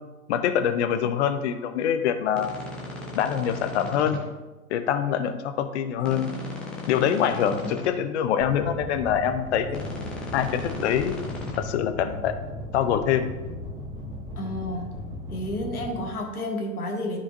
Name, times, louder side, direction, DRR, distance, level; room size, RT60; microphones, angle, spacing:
voice 1, 0.3-2.5 3.1-4.2 4.7-6.3 6.9-9.8 10.3-11.1 11.6-12.4 12.7-13.3, left 9 dB, 45° left, 8 dB, 0.8 m, -25 dB
sound 1, 2.3-4.2 6.0-7.9 9.7-11.6, left 2 dB, ahead, 0.4 m, -36 dB
sound 2, 8.4-16.0, left 1 dB, 15° right, 1.9 m, -37 dB
voice 2, 14.4-15.0 15.3-17.2, left 1 dB, 75° left, 2 dB, 1.6 m, -31 dB
13.0 x 4.9 x 2.6 m, 1.2 s
figure-of-eight pair, 105°, 45 cm